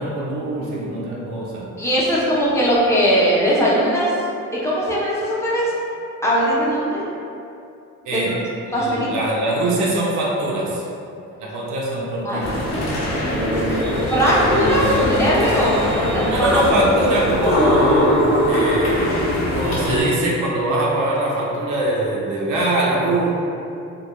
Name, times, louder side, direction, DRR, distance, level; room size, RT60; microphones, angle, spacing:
voice 1, 0.0-1.7 8.1-8.4 8.7-10.8 11.4-12.6 16.3-18.2 18.5-19.2 19.6-23.4, right 1 dB, 80° right, -4 dB, 0.5 m, -22 dB
voice 2, 1.8-4.1 4.6-5.7 6.2-7.0 8.1-8.4 8.7-9.1 12.2-13.0 13.7-13.8 14.1-16.6, equal, 10° left, -8 dB, 0.6 m, -20 dB
sound 1, 12.4-20.0, left 1 dB, 60° left, 0.7 m, -21 dB
2.2 x 2.1 x 2.8 m, 2.6 s
cardioid pair, 90°, 30 cm